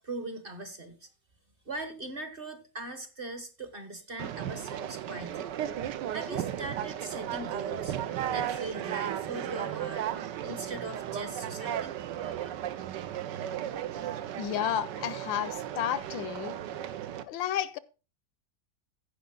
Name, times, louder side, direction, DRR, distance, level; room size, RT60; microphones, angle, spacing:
voice 1, 0.0-1.1 1.7-5.5 6.1-7.9 8.3-11.9 12.2-12.5, right 2 dB, 35° right, 1.1 m, -40 dB
Conversation, 4.2-17.2, right 11 dB, 75° right, 1.3 m, -35 dB
voice 2, 14.4-16.6 17.2-17.8, left 10 dB, 80° left, 1.3 m, -32 dB
15.5 x 5.2 x 3.8 m
omnidirectional pair, 2.1 m